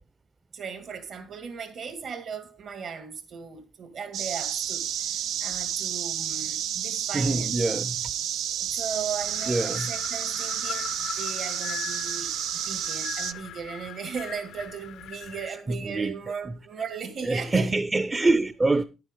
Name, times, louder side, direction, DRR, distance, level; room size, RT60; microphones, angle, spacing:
voice 1, 0.5-7.5 8.6-17.7, right 6 dB, 65° right, 2.2 m, -37 dB
sound 1, 4.1-13.3, right 10 dB, 80° right, 0.5 m, -31 dB
voice 2, 7.1-8.0 9.5-9.9 15.7-16.2 16.4-16.5 17.2-18.8, right 2 dB, 25° right, 0.6 m, -25 dB
Wind, 9.2-15.6, left 10 dB, 85° left, 0.7 m, -40 dB
10.0 x 9.4 x 3.7 m
cardioid pair, 90°, 0 cm